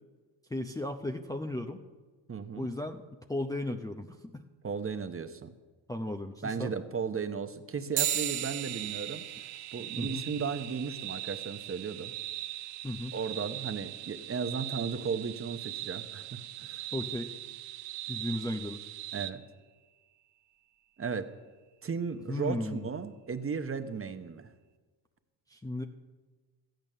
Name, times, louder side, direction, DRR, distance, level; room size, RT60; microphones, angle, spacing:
voice 1, 0.5-1.8 2.5-3.0 3.3-4.4 5.9-6.7 10.0-10.2 12.8-13.1 16.9-17.3 18.1-18.8 22.3-22.9 25.5-25.8, left 1 dB, 5° left, 3 dB, 0.7 m, -35 dB
voice 2, 2.3-2.7 4.6-5.5 6.4-9.2 9.7-12.1 13.1-16.9 19.1-19.4 21.0-21.3 21.8-24.5, right 5 dB, 25° right, 9 dB, 1.0 m, -35 dB
sound 1, 8.0-17.8, right 11 dB, 60° right, 1.2 m, -40 dB
sound 2, 8.1-19.3, right 14 dB, 75° right, 0.8 m, -41 dB
13.5 x 9.1 x 6.7 m, 1.3 s
supercardioid pair, 75°, 49 cm